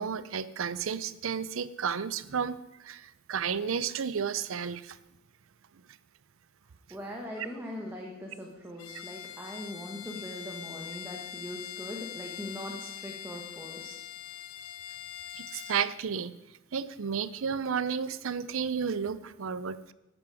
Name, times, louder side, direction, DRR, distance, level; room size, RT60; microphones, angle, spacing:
voice 1, 0.0-5.0 15.3-16.3 16.7-19.9, right 6 dB, 70° right, 16 dB, 0.5 m, -32 dB
voice 2, 6.9-13.9, equal, 10° right, -1 dB, 1.4 m, -41 dB
Bowed string instrument, 8.8-16.0, left 11 dB, 85° left, 0.7 m, -43 dB
12.5 x 9.9 x 4.9 m, 0.95 s
head